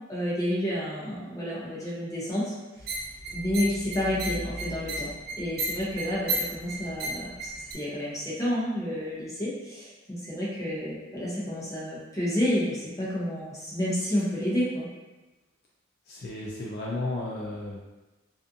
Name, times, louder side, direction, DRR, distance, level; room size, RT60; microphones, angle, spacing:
voice 1, 0.1-2.5 2.8-2.9 3.3-14.9, equal, 15° left, -8 dB, 0.7 m, -30 dB
sound 1, 2.8-7.7, right 1 dB, 50° right, 0.4 m, -34 dB
voice 2, 16.1-17.8, left 2 dB, 50° left, -4 dB, 0.3 m, -33 dB
2.5 x 2.4 x 2.5 m, 1.1 s
head